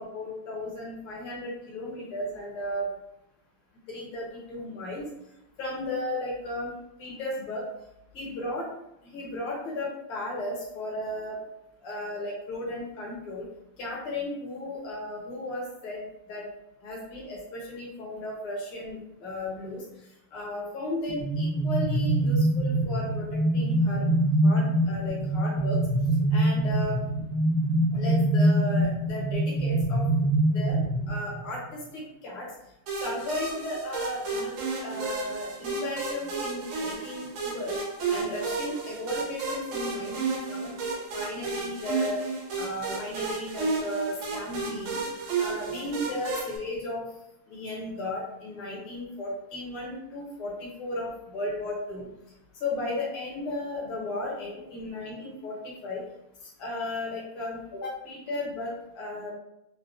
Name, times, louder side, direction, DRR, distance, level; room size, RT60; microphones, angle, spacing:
voice 1, 0.0-2.9 3.9-5.1 5.6-6.7 7.0-7.6 8.1-8.7 9.0-11.4 11.8-13.5 13.8-16.4 16.8-19.8 20.3-23.3 23.5-24.2 24.4-25.8 26.3-27.0 27.9-30.1 30.5-30.8 31.1-32.5 33.0-37.8 38.1-42.2 42.6-45.0 45.4-47.1 47.5-52.1 52.6-56.0 56.6-59.3, left 1 dB, 70° left, -4 dB, 1.3 m, -35 dB
sound 1, 21.1-31.6, right 1 dB, 50° left, 1.0 m, -24 dB
sound 2, 32.9-46.6, right 4 dB, 75° right, 2.5 m, -32 dB
6.4 x 2.1 x 2.5 m, 0.83 s
omnidirectional pair, 3.5 m